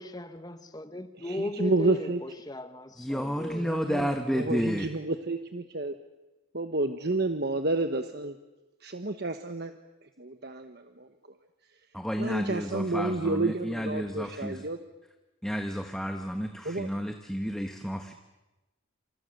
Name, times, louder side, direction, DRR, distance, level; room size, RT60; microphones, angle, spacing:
voice 1, 0.0-3.6, left 1 dB, 20° left, 10 dB, 1.3 m, -37 dB
voice 2, 1.3-2.2 3.5-5.9 6.5-8.3 8.8-9.7 10.2-11.1 12.2-14.8 16.6-16.9, right 2 dB, 50° right, 7 dB, 1.1 m, -30 dB
voice 3, 3.0-4.9 11.9-14.6 15.4-18.1, equal, ahead, 4 dB, 1.2 m, -31 dB
28.5 x 27.5 x 6.6 m, 1.1 s
head